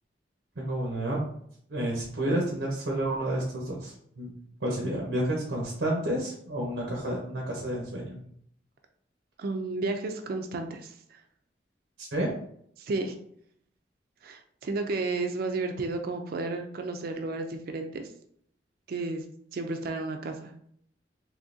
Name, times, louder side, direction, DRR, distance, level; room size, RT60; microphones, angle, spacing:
voice 1, 0.6-1.2 1.7-4.3 4.6-8.2 12.0-12.4, right 1 dB, 90° right, -2 dB, 0.8 m, -30 dB
voice 2, 9.4-11.2 12.8-13.1 14.2-18.1 18.9-19.2 19.5-20.5, right 3 dB, 55° right, 5 dB, 0.4 m, -32 dB
3.6 x 2.7 x 2.6 m, 0.67 s
head